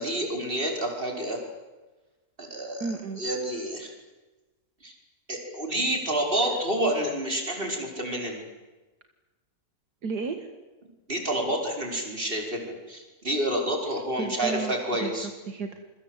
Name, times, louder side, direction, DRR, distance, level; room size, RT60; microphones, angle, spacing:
voice 1, 0.0-1.4 2.4-3.9 4.8-4.9 5.3-8.4 11.1-15.3, right 1 dB, 30° right, 1 dB, 5.6 m, -29 dB
voice 2, 2.8-3.2 10.0-10.5 14.2-14.7 15.0-15.1 15.5-16.0, right 4 dB, 75° right, 5 dB, 2.3 m, -33 dB
27.5 x 23.5 x 8.2 m, 1.2 s
omnidirectional pair, 1.8 m